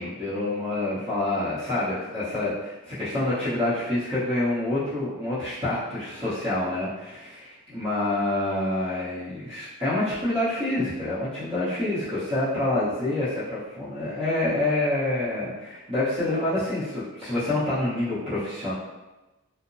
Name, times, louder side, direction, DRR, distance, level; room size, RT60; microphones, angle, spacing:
voice 1, 0.0-7.3 7.7-18.7, left 1 dB, 25° right, -13 dB, 0.7 m, -27 dB
2.8 x 2.0 x 2.6 m, 1.1 s
head